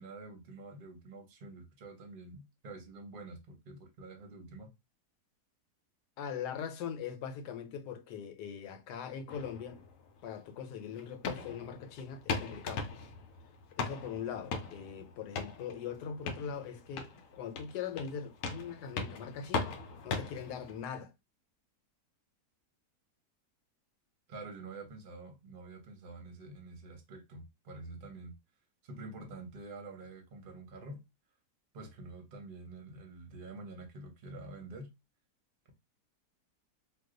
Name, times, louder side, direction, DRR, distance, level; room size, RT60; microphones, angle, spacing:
voice 1, 0.0-4.7 24.3-28.3 28.8-31.0 31.7-34.9, right 3 dB, 40° right, 0.8 m, -47 dB
voice 2, 6.2-9.8 10.2-12.9 13.8-19.8 20.0-21.1, left 7 dB, 85° left, 1.2 m, -41 dB
sound 1, 9.3-20.8, left 4 dB, 65° left, 0.9 m, -40 dB
2.6 x 2.3 x 3.7 m
omnidirectional pair, 1.7 m